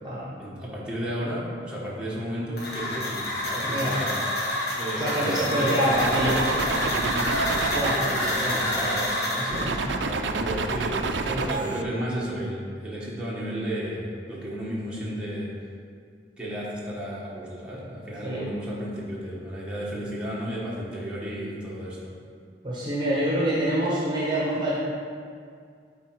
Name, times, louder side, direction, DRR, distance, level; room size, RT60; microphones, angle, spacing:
voice 1, 0.4-4.2 4.8-15.5 16.4-22.1, equal, 5° right, -7 dB, 1.2 m, -33 dB
sound 1, 2.6-9.7, left 1 dB, 60° left, 1.5 m, -28 dB
voice 2, 3.6-4.0 5.0-6.4 7.7-8.1 9.5-9.8 11.2-11.7 18.2-18.4 22.6-24.7, right 1 dB, 25° right, -6 dB, 1.1 m, -26 dB
sound 2, 5.9-9.1 9.5-11.8, right 4 dB, 80° right, 0.5 m, -29 dB
8.4 x 4.2 x 4.6 m, 2.2 s
head